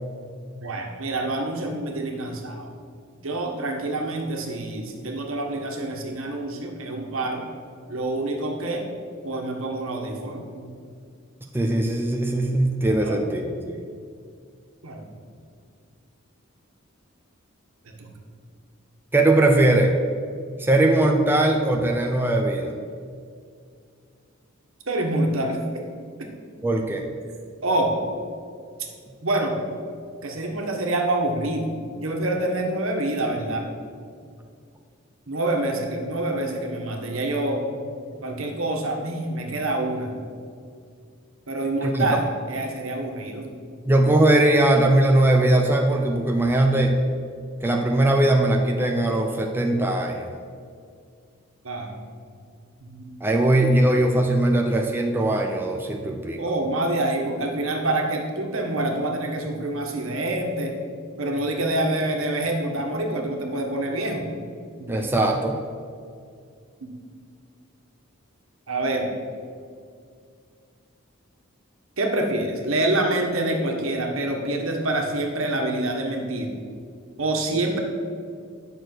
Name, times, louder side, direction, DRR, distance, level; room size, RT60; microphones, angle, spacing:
voice 1, 0.6-2.7 3.2-7.4 7.9-8.9 9.2-10.7 13.0-13.2 14.8-15.0 18.0-18.1 24.9-25.6 27.6-28.0 29.2-29.6 30.2-31.7 32.0-33.7 35.3-37.6 38.2-40.1 41.5-43.5 51.6-51.9 52.8-53.1 56.4-60.8 61.2-64.3 64.8-65.1 66.8-66.9 68.7-69.1 72.0-76.5 77.2-77.8, right 1 dB, 75° right, 1 dB, 1.5 m, -26 dB
voice 2, 11.5-13.8 19.1-19.9 20.6-22.7 26.6-27.0 41.8-42.1 43.9-47.0 47.6-50.3 53.2-56.4 64.9-65.6, right 1 dB, 10° right, 2 dB, 0.6 m, -20 dB
9.3 x 6.6 x 6.1 m, 2.2 s
head